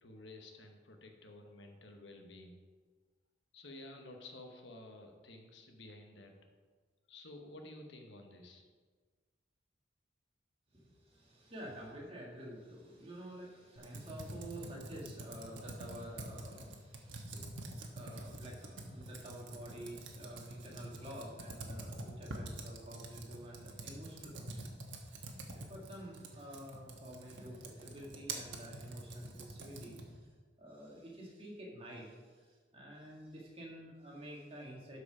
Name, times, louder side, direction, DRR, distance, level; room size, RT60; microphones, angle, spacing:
voice 1, 0.0-2.6 3.5-6.4 7.1-8.7, left 2 dB, 70° left, 3 dB, 1.1 m, -52 dB
voice 2, 10.7-30.3 30.6-35.0, equal, 30° right, -3 dB, 2.0 m, -50 dB
Computer keyboard, 13.8-30.2, right 2 dB, 80° right, 1.2 m, -47 dB
12.0 x 4.9 x 4.9 m, 1.5 s
head